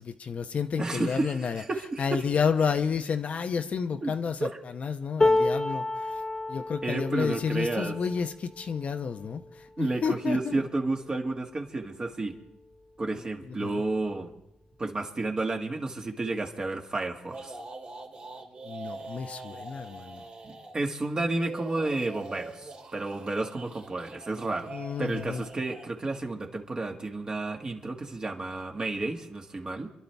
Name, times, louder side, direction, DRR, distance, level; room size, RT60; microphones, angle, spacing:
voice 1, 0.0-1.6 2.0-4.4 4.8-5.8 6.5-9.4 9.8-10.6 18.7-20.2 24.7-25.4, left 6 dB, 50° left, 0.8 m, -30 dB
voice 2, 0.8-2.3 4.0-4.6 6.8-8.0 9.8-12.4 13.0-14.3 14.8-17.6 20.4-29.9, right 2 dB, 30° right, 1.9 m, -31 dB
sound 1, 5.2-11.4 11.9-12.1 12.4-13.2 14.2-14.3, left 2 dB, 20° left, 1.1 m, -31 dB
sound 2, 17.3-20.8 21.3-25.9, right 3 dB, 50° right, 2.7 m, -44 dB
27.0 x 11.5 x 3.5 m
cardioid pair, 80°, 3 cm